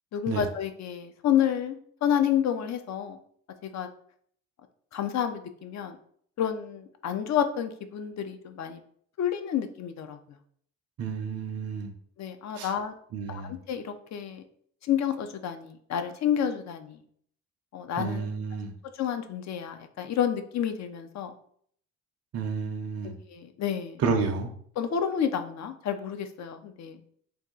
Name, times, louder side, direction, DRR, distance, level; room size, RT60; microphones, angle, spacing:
voice 1, 0.1-3.2 3.6-3.9 4.9-6.0 6.4-8.8 9.2-10.2 12.2-12.9 13.3-14.4 14.8-17.0 17.7-18.2 18.9-21.3 23.3-24.0 24.8-27.1, left 9 dB, 50° left, 8 dB, 0.5 m, -29 dB
voice 2, 11.0-11.9 12.5-12.7 13.1-13.5 18.0-18.7 22.3-23.1 24.0-24.5, right 5 dB, 45° right, 4 dB, 0.6 m, -30 dB
2.6 x 2.3 x 3.7 m, 0.62 s
supercardioid pair, 65°, 37 cm